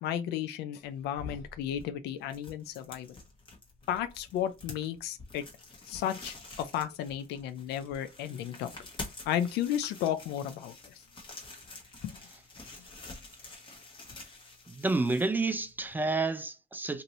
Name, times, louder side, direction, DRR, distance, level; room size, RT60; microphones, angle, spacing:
voice 1, 0.0-3.1 3.9-5.4 5.9-8.7 9.3-11.0 12.0-12.2, left 10 dB, 85° left, 0.4 m, -33 dB
sound 1, 0.8-16.0, left 3 dB, 30° left, 1.1 m, -48 dB
voice 2, 14.7-17.0, right 3 dB, 10° right, 0.4 m, -29 dB
2.7 x 2.6 x 3.0 m
cardioid pair, 110°, 17 cm